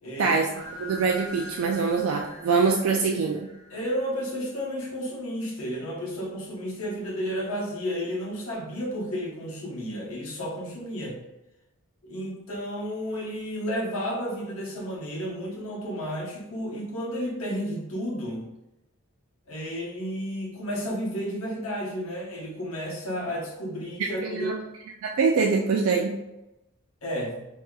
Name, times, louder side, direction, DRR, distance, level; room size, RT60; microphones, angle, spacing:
voice 1, 0.0-0.4 3.7-11.2 12.0-18.5 19.5-24.5 27.0-27.5, equal, 75° left, -2 dB, 0.9 m, -32 dB
sound 1, 0.5-4.5, equal, 25° left, 1.4 m, -43 dB
voice 2, 0.8-3.5 24.2-24.5 25.0-26.2, right 5 dB, 75° right, 1 dB, 0.3 m, -24 dB
3.7 x 2.8 x 2.3 m, 0.95 s
head